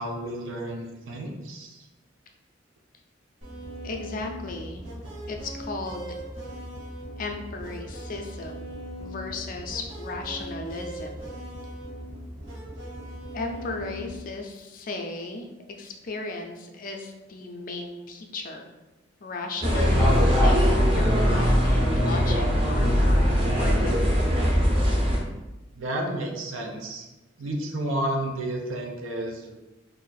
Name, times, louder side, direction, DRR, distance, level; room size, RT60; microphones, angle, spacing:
voice 1, 0.0-1.8 25.8-27.1 27.4-29.5, right 1 dB, 85° right, 1 dB, 0.6 m, -31 dB
sound 1, 3.4-14.2, equal, 55° right, 1.2 m, -39 dB
voice 2, 3.8-4.8 5.3-6.1 7.2-8.7 9.0-11.3 13.3-18.7 19.2-24.1, left 2 dB, 45° left, 3 dB, 0.4 m, -36 dB
sound 2, 19.6-25.2, equal, 25° right, 0.6 m, -21 dB
2.6 x 2.4 x 3.9 m, 1.1 s
head